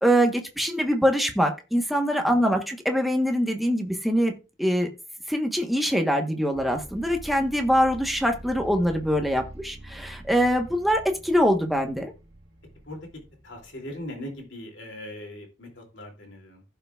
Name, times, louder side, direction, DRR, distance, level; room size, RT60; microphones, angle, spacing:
voice 1, 0.0-4.3 4.6-4.9 5.3-12.1, equal, ahead, 4 dB, 1.1 m, -23 dB
sound 1, 6.5-14.4, right 1 dB, 75° right, 1.8 m, -45 dB
voice 2, 13.4-16.6, left 1 dB, 80° left, 1 dB, 2.8 m, -40 dB
15.5 x 5.7 x 2.4 m, 0.30 s
head